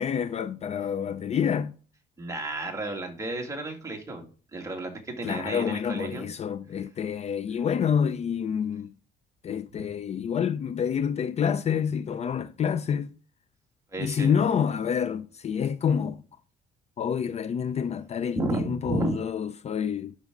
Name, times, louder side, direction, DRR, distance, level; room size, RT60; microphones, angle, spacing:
voice 1, 0.0-1.7 5.2-8.9 9.4-13.1 14.0-16.2 17.0-20.2, left 7 dB, 40° left, 0.6 m, -28 dB
voice 2, 2.2-6.3 13.9-14.3 18.4-19.1, right 2 dB, 20° right, 2.5 m, -32 dB
11.0 x 6.4 x 3.9 m
cardioid pair, 110°, 17 cm